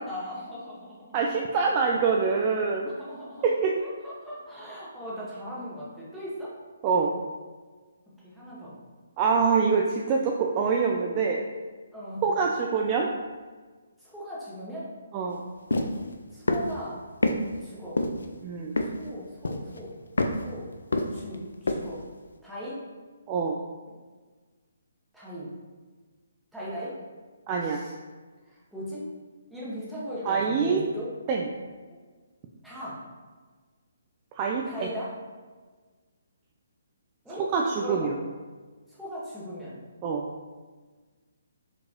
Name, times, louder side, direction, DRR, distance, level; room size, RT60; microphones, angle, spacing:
voice 1, 0.0-1.0 3.0-3.4 4.0-6.5 8.2-8.7 11.9-12.2 14.0-14.9 16.3-17.0 17.6-18.0 19.0-19.9 20.4-20.7 21.1-22.0 22.4-22.8 25.1-25.5 26.5-27.0 27.6-27.9 28.5-29.0 29.5-31.1 32.6-33.1 34.6-35.1 37.2-37.4 37.7-38.1 38.9-39.8, equal, ahead, -9 dB, 1.2 m, -38 dB
voice 2, 1.1-2.9 3.4-3.8 6.8-7.1 9.2-11.5 12.2-13.1 15.1-15.4 18.4-18.8 23.3-23.6 27.5-27.8 30.2-30.8 31.3-31.5 34.4-34.9 37.3-38.2 40.0-40.3, right 5 dB, 30° right, 0 dB, 0.3 m, -25 dB
sound 1, 15.7-15.9 16.5-16.7 17.2-17.4 18.0-18.3 18.8-19.1 19.4-19.8 20.2-20.4 20.9-21.4 21.7-21.8, left 2 dB, 75° left, 0.4 m, -25 dB
4.2 x 2.9 x 3.0 m, 1.4 s
figure-of-eight pair, 140°, 0 cm